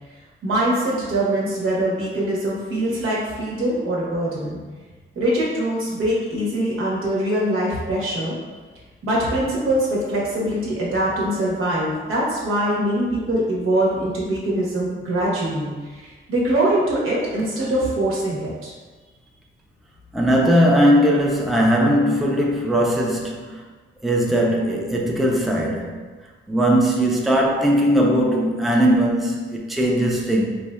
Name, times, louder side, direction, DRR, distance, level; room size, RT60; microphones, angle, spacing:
voice 1, 0.4-4.6 5.1-8.3 9.0-18.7, right 1 dB, 90° right, -5 dB, 1.0 m, -23 dB
voice 2, 20.1-23.6 24.0-26.0 26.5-30.5, equal, ahead, -2 dB, 0.4 m, -19 dB
4.3 x 2.6 x 2.2 m, 1.4 s
wide cardioid pair, 125°, 21 cm